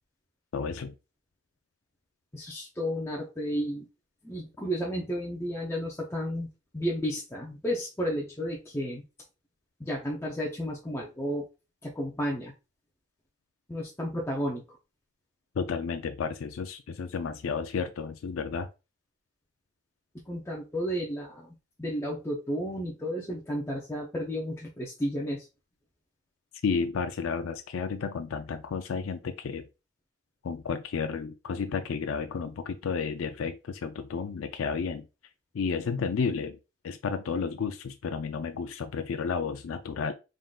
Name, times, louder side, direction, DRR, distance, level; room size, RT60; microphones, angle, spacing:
voice 1, 0.5-0.9 15.6-18.7 26.6-29.6 30.4-35.1 35.5-36.6 36.8-40.1, left 5 dB, 85° left, 0.4 m, -32 dB
voice 2, 2.3-3.9 4.2-9.0 9.8-11.5 11.8-12.5 13.7-14.8 20.3-25.5, equal, 15° left, 0.6 m, -32 dB
3.7 x 3.7 x 2.3 m
head